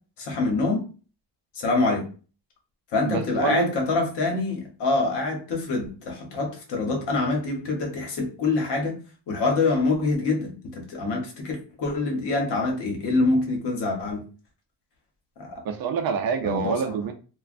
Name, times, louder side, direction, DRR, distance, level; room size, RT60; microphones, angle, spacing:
voice 1, 0.2-0.9 1.5-2.1 2.9-9.0 9.3-14.2 15.4-15.6 16.4-16.9, left 3 dB, 65° left, 1 dB, 1.1 m, -25 dB
voice 2, 3.0-3.7 15.6-17.1, right 6 dB, 50° right, 6 dB, 0.5 m, -26 dB
3.1 x 2.2 x 2.5 m, 0.36 s
cardioid pair, 160°, 45 cm